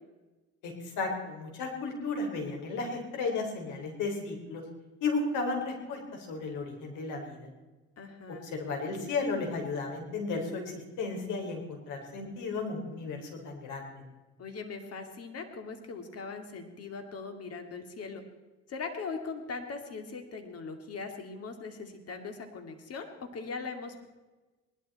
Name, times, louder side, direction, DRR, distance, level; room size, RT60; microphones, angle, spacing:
voice 1, 0.6-4.6 5.0-7.5 8.4-10.6 11.0-14.0, left 3 dB, 75° left, 2 dB, 4.5 m, -34 dB
voice 2, 8.0-8.4 14.4-18.2 18.7-24.1, left 4 dB, 50° left, 6 dB, 2.7 m, -40 dB
19.0 x 12.0 x 4.3 m, 1.2 s
supercardioid pair, 85°, 31 cm